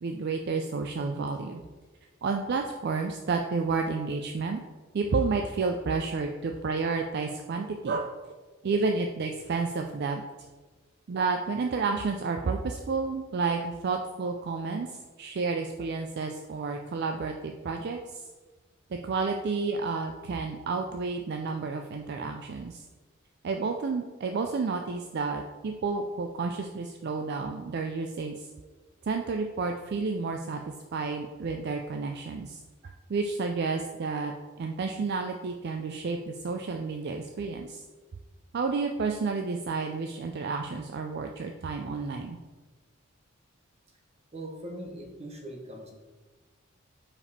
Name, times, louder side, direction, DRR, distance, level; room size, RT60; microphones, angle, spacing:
voice 1, 0.0-1.6 2.2-4.6 4.9-8.1 8.6-10.2 11.1-18.2 19.0-22.8 23.4-28.5 29.0-30.6 30.9-34.3 34.6-37.8 38.5-42.4, right 4 dB, 55° right, 4 dB, 0.4 m, -31 dB
voice 2, 44.3-45.9, right 1 dB, 30° right, 1 dB, 1.1 m, -40 dB
5.3 x 4.9 x 4.1 m, 1.3 s
head